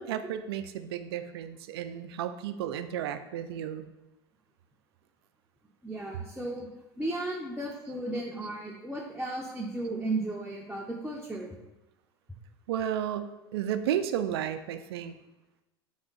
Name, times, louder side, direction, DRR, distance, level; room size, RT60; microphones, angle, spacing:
voice 1, 0.0-3.9 12.7-15.1, right 10 dB, 70° right, 10 dB, 0.4 m, -33 dB
voice 2, 5.8-6.7 7.0-11.6, right 2 dB, 5° right, -5 dB, 0.6 m, -35 dB
3.6 x 3.4 x 4.0 m, 0.99 s
hypercardioid pair, 80°, 13 cm